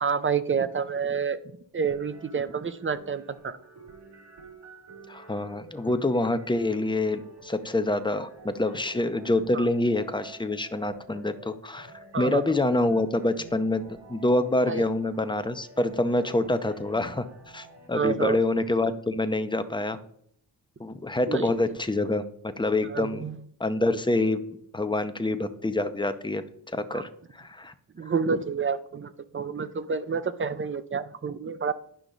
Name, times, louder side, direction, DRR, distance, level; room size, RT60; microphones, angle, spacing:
voice 1, 0.0-1.4 1.7-3.6 9.5-9.7 12.1-12.4 14.7-14.8 17.9-18.4 21.3-21.6 22.8-23.4 26.9-27.0 28.0-31.7, right 6 dB, 30° right, 13 dB, 0.6 m, -28 dB
sound 1, 1.9-17.9, right 3 dB, 70° right, 2.4 m, -50 dB
voice 2, 5.1-11.9 12.2-13.8 14.1-20.0 20.8-22.2 22.6-23.3 23.6-24.4 24.7-26.4 26.7-27.7, left 2 dB, 10° left, 9 dB, 0.7 m, -26 dB
10.0 x 5.9 x 3.9 m, 0.69 s
wide cardioid pair, 100°, 42 cm